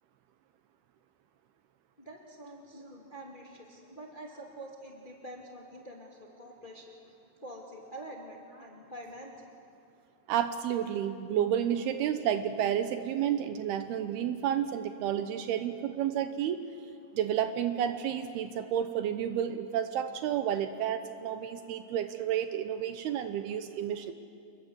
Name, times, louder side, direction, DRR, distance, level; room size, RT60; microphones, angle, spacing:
voice 1, 2.0-6.9 7.4-9.5, right 1 dB, 15° left, 0 dB, 2.1 m, -46 dB
voice 2, 10.3-16.6 17.1-24.1, right 10 dB, 75° right, 9 dB, 2.7 m, -31 dB
28.5 x 21.5 x 8.1 m, 2.5 s
omnidirectional pair, 4.9 m